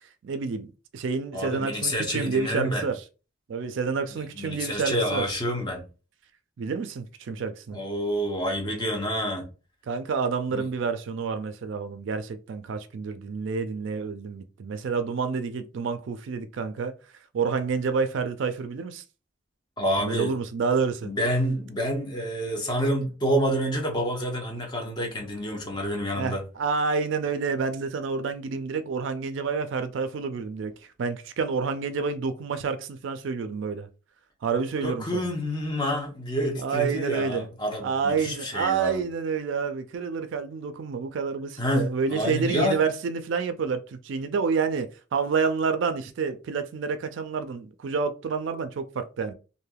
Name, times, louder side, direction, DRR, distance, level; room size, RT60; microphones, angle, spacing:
voice 1, 0.2-3.0 3.5-5.3 6.6-7.8 9.9-16.9 17.3-19.0 20.0-21.1 26.2-30.7 31.0-33.9 34.4-35.3 36.6-37.5 37.8-49.3, right 5 dB, 65° right, 0.4 m, -28 dB
voice 2, 1.3-2.9 4.4-5.8 7.7-9.5 10.5-10.7 19.8-20.4 21.0-26.4 34.8-39.0 41.6-42.8, equal, 20° left, 0.8 m, -28 dB
3.2 x 2.6 x 2.3 m
head